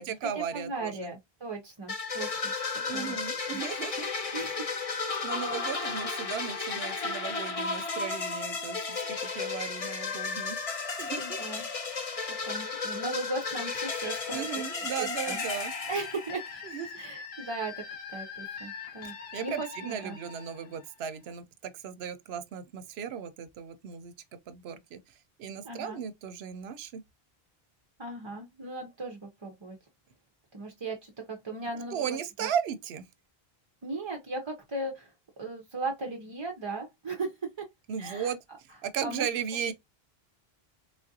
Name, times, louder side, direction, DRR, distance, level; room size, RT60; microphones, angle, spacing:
voice 1, 0.0-1.1 2.7-4.1 5.2-10.6 11.0-11.4 14.3-15.7 16.6-16.9 19.0-24.1 24.5-27.0 31.9-33.1 37.9-39.7, right 8 dB, 80° right, 0.8 m, -36 dB
voice 2, 0.5-2.5 2.9-3.2 3.5-3.6 4.3-4.7 5.5-5.6 11.2-11.7 12.5-14.6 15.0-15.4 15.9-16.4 17.0-17.7 18.1-19.1 19.4-20.2 25.6-26.0 28.0-29.8 30.5-32.5 33.8-35.1 35.4-37.3 37.6-37.7 38.0-38.3 39.0-39.3, right 2 dB, 35° right, 0.5 m, -37 dB
sound 1, 1.9-16.7, left 4 dB, 40° left, 0.6 m, -34 dB
sound 2, 13.7-21.3, left 6 dB, 80° left, 1.1 m, -43 dB
3.5 x 2.4 x 2.6 m
omnidirectional pair, 1.0 m